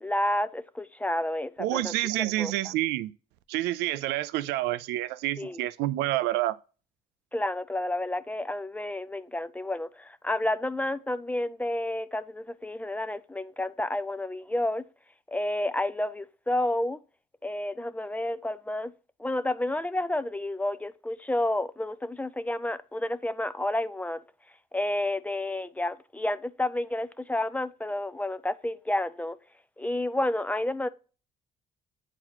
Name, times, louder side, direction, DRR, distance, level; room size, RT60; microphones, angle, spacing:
voice 1, 0.0-1.9 2.4-2.5 5.4-5.6 7.3-14.9 15.3-17.0 17.4-18.9 19.2-24.2 24.7-29.4 29.8-30.9, left 1 dB, 10° left, 0.3 m, -30 dB
voice 2, 1.6-3.1 3.5-6.6, right 16 dB, 90° right, 0.4 m, -28 dB
8.8 x 4.0 x 3.0 m
cardioid pair, 110°, 17 cm